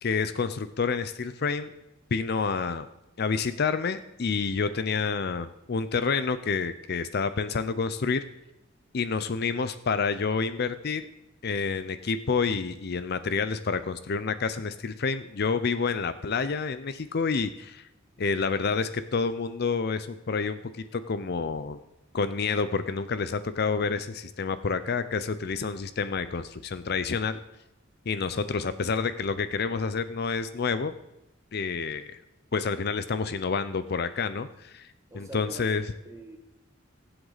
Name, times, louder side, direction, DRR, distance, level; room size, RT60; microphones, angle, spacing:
voice 1, 0.0-1.7 2.1-2.9 3.2-8.2 8.9-11.1 11.4-17.9 18.2-21.8 22.1-27.4 28.1-30.9 31.5-32.2 32.5-35.8, left 5 dB, 50° left, 12 dB, 0.5 m, -28 dB
voice 2, 18.1-18.4 35.1-36.4, right 2 dB, 15° right, 1 dB, 1.8 m, -46 dB
22.5 x 7.9 x 4.0 m, 0.92 s
head